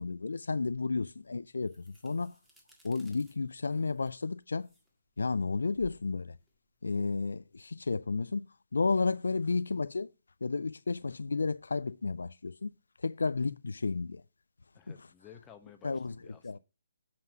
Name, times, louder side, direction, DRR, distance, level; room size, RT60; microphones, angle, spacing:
voice 1, 0.0-2.4 2.8-4.7 5.2-6.4 6.8-8.5 8.7-10.1 10.4-12.7 13.0-14.2 14.9-15.0 15.8-16.1 16.4-16.6, left 4 dB, 75° left, 0.4 m, -32 dB
sound 1, 1.1-7.8, right 2 dB, 5° right, 1.8 m, -61 dB
voice 2, 14.7-16.6, left 8 dB, 15° left, 1.0 m, -55 dB
7.6 x 5.9 x 6.0 m
figure-of-eight pair, 140°, 0 cm